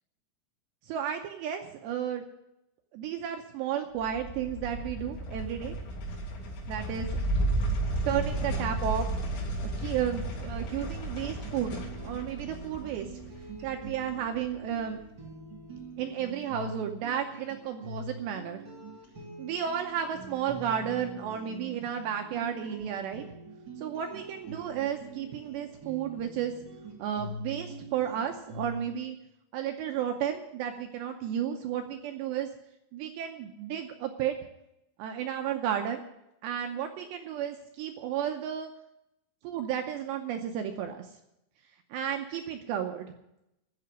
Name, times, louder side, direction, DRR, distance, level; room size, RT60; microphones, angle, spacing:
voice 1, 0.9-2.2 2.9-5.8 6.7-7.1 8.1-9.1 9.8-13.1 13.6-15.0 16.0-18.6 19.4-23.3 23.8-26.5 27.0-29.2 29.5-32.5 32.9-34.4 35.0-36.0 36.4-38.7 39.4-41.1 41.9-43.1, right 9 dB, 80° right, 5 dB, 2.6 m, -33 dB
sound 1, 4.0-14.6, right 1 dB, 85° left, 6.0 m, -33 dB
sound 2, 11.3-28.9, right 2 dB, 35° right, 2.1 m, -44 dB
14.5 x 6.9 x 9.5 m, 0.84 s
omnidirectional pair, 5.8 m